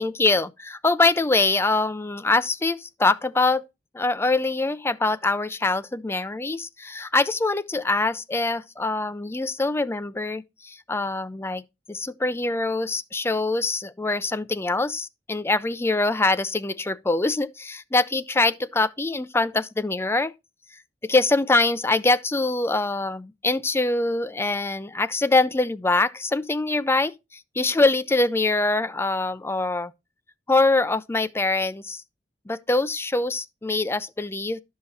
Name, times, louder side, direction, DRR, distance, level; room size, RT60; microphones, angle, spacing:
voice 1, 0.0-3.6 3.9-11.6 11.9-20.3 21.0-27.1 27.6-29.9 30.5-32.0 32.5-34.6, left 2 dB, 15° left, 0.4 m, -24 dB
12.0 x 5.6 x 4.4 m
head